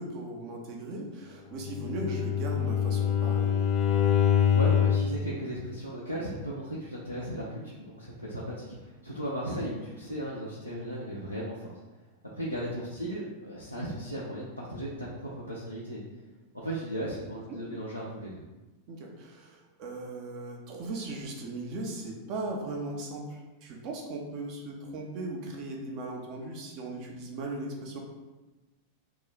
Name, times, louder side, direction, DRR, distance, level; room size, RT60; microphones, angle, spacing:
voice 1, 0.0-3.5 17.5-17.6 18.9-28.0, right 2 dB, 40° right, 0 dB, 0.7 m, -38 dB
Bowed string instrument, 1.6-5.2, left 8 dB, 35° left, 0.5 m, -25 dB
voice 2, 4.5-11.8 12.3-16.0 16.5-18.4, right 1 dB, 90° left, -6 dB, 0.5 m, -36 dB
2.9 x 2.3 x 3.7 m, 1.1 s
figure-of-eight pair, 90°, 0 cm